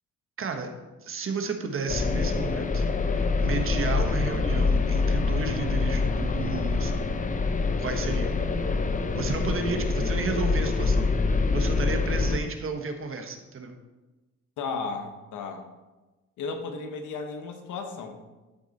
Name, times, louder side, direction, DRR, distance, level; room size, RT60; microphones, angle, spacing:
voice 1, 0.4-0.7 1.0-2.8 3.1-7.0 7.8-8.3 9.1-11.1 11.5-13.8, right 4 dB, 45° right, 5 dB, 1.2 m, -32 dB
sound 1, 1.9-12.4, left 4 dB, 25° left, 0.7 m, -25 dB
voice 2, 14.6-15.6 16.4-18.2, left 4 dB, 80° left, 5 dB, 1.2 m, -34 dB
12.5 x 4.6 x 4.1 m, 1.1 s
cardioid pair, 90°, 30 cm